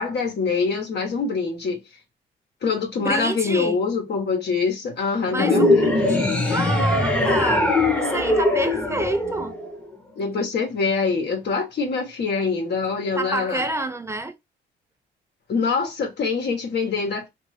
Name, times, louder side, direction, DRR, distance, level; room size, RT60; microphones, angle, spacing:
voice 1, 0.0-1.8 2.6-6.1 10.2-13.6 15.5-17.3, left 4 dB, 60° left, 1.2 m, -24 dB
voice 2, 3.0-3.8 5.2-7.7 8.0-9.5 13.2-14.4, right 2 dB, 15° right, 0.5 m, -28 dB
sound 1, 5.4-9.9, left 2 dB, 5° left, 1.1 m, -21 dB
2.6 x 2.5 x 3.2 m
cardioid pair, 90°, 20 cm